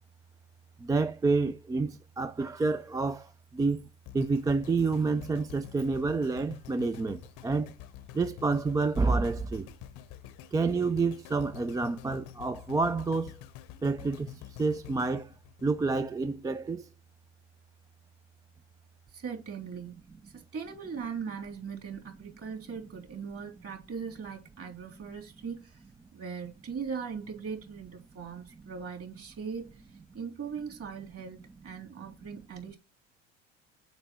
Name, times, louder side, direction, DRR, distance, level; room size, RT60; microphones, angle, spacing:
voice 1, 0.8-3.9 4.1-7.7 8.1-9.7 10.5-13.4 13.8-15.3 15.6-16.9, right 3 dB, 10° right, 0.3 m, -29 dB
sound 1, 4.1-16.3 16.8-16.9, left 13 dB, 60° left, 0.8 m, -47 dB
voice 2, 19.1-20.0 20.3-25.8 26.1-29.8 30.1-32.8, right 6 dB, 35° right, 3.5 m, -39 dB
6.7 x 5.2 x 4.5 m
hypercardioid pair, 75°, 37 cm